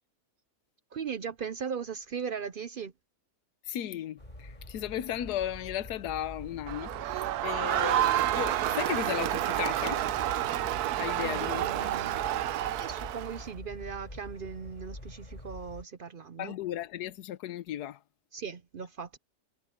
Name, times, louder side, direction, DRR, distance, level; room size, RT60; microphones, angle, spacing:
voice 1, 0.9-2.9 11.2-12.2 12.7-16.5 18.3-19.2, right 6 dB, 60° right, 0.5 m, -38 dB
voice 2, 3.7-10.0 11.0-12.0 16.4-18.0, left 11 dB, 80° left, 1.3 m, -35 dB
sound 1, 4.2-15.8, left 1 dB, 25° left, 5.3 m, -46 dB
Crowd, 6.7-13.5, right 13 dB, 80° right, 1.1 m, -29 dB
omnidirectional pair, 1.7 m